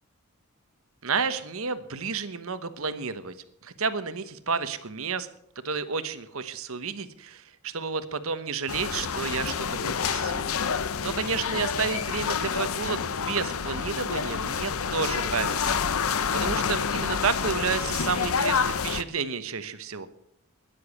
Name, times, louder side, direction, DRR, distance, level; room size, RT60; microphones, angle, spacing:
voice 1, 1.0-3.3 3.6-5.3 5.6-10.5 11.0-13.0 13.3-20.1, right 5 dB, 70° right, 12 dB, 1.1 m, -31 dB
sound 1, 8.7-19.0, left 6 dB, 70° left, 0.7 m, -28 dB
13.0 x 10.5 x 7.2 m, 0.74 s
head